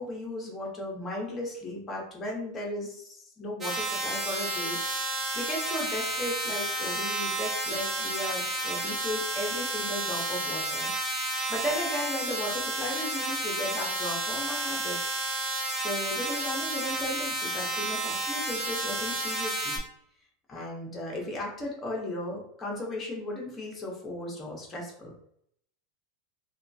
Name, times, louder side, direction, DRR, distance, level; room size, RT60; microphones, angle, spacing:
voice 1, 0.0-10.9 11.5-15.4 15.7-19.8 20.5-25.1, left 1 dB, 15° left, -2 dB, 0.8 m, -36 dB
sound 1, 3.6-19.8, right 2 dB, 30° right, 0.7 m, -31 dB
2.8 x 2.3 x 2.6 m, 0.67 s
supercardioid pair, 155°, 0 cm